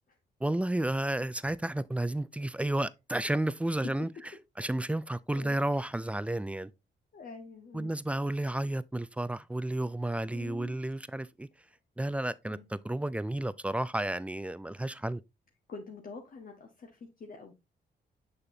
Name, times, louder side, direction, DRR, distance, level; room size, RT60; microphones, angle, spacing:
voice 1, 0.4-4.1 4.6-6.7 7.7-11.5 12.0-15.2, right 1 dB, 5° right, 0.4 m, -32 dB
voice 2, 7.1-7.9 10.3-10.8 11.7-11.8 12.5-12.7 15.7-17.5, left 4 dB, 50° left, 1.1 m, -46 dB
6.7 x 5.7 x 2.6 m
cardioid pair, 80°, 18 cm